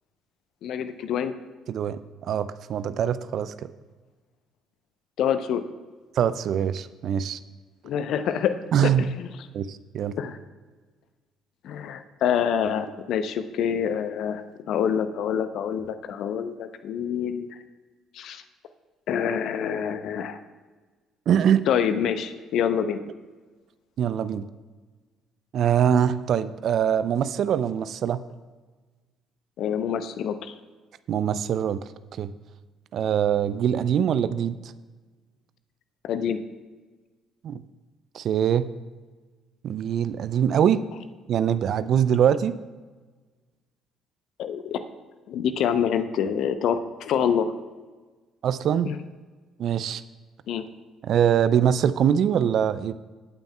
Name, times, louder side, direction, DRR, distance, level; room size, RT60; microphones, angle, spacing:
voice 1, 0.6-1.3 5.2-5.6 7.8-8.5 8.8-8.9 9.2-9.3 10.2-10.4 11.6-17.5 18.1-18.4 19.1-20.4 21.7-23.0 29.6-30.5 36.0-36.4 44.4-44.8 45.3-47.5 48.8-49.0 50.5-50.6, left 8 dB, 60° left, 10 dB, 0.7 m, -26 dB
voice 2, 1.7-2.0 2.3-3.7 6.2-7.4 8.7-9.1 9.5-10.2 21.3-21.6 24.0-24.5 25.5-28.2 31.1-31.8 32.2-32.3 32.9-34.6 37.4-37.6 38.1-38.7 39.6-40.8 41.3-42.6 48.4-48.9 49.6-50.0 51.0-52.9, right 9 dB, 55° right, 14 dB, 0.5 m, -23 dB
19.5 x 8.9 x 2.3 m, 1.4 s
hypercardioid pair, 50°, 0 cm